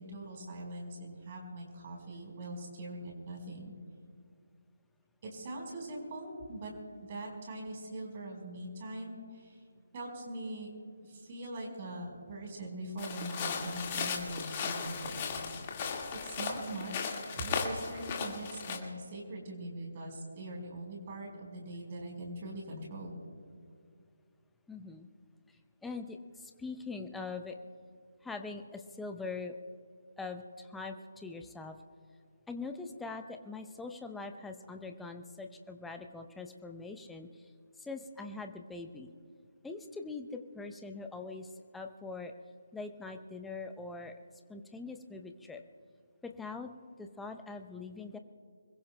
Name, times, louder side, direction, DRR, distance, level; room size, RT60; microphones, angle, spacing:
voice 1, 0.0-3.7 5.2-6.7 7.0-9.6 9.9-10.7 11.0-15.3 16.1-23.1, right 1 dB, 35° right, 0 dB, 4.5 m, -42 dB
sound 1, 13.0-18.8, left 6 dB, 30° left, 1.8 m, -36 dB
voice 2, 24.7-25.1 25.8-27.6 28.2-29.5 30.2-31.8 32.5-37.5 37.8-39.1 39.6-42.3 42.7-44.2 44.5-45.6 46.2-46.7 47.0-48.2, left 3 dB, 5° left, 5 dB, 0.7 m, -42 dB
26.0 x 22.0 x 2.2 m, 2.3 s
figure-of-eight pair, 150°, 0 cm